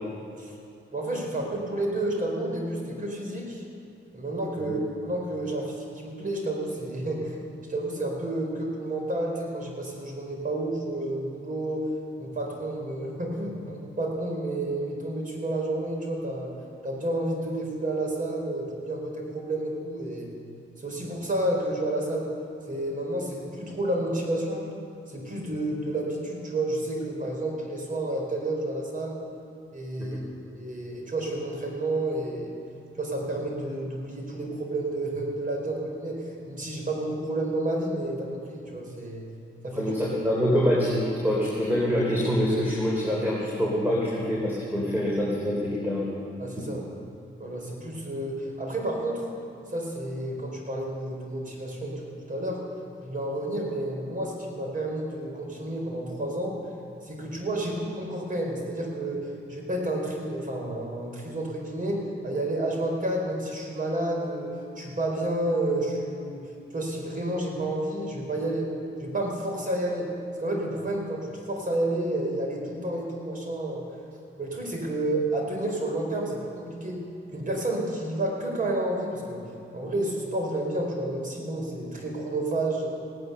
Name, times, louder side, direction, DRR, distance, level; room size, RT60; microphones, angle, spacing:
voice 1, 0.9-3.6 4.1-7.4 7.7-11.9 12.2-16.5 16.8-20.3 20.8-22.3 22.7-24.7 25.1-29.2 29.7-30.2 30.6-32.6 33.0-39.3 39.6-39.9 46.4-46.8 47.4-49.3 49.7-52.6 53.0-56.5 57.0-68.7 69.0-70.1 70.4-73.8 74.4-77.0 77.3-79.4 79.7-82.9, right 1 dB, 40° right, -1 dB, 4.6 m, -30 dB
voice 2, 39.7-46.1 46.6-46.7, equal, 10° right, -5 dB, 3.5 m, -25 dB
17.5 x 9.5 x 6.8 m, 2.7 s
cardioid pair, 65°, 21 cm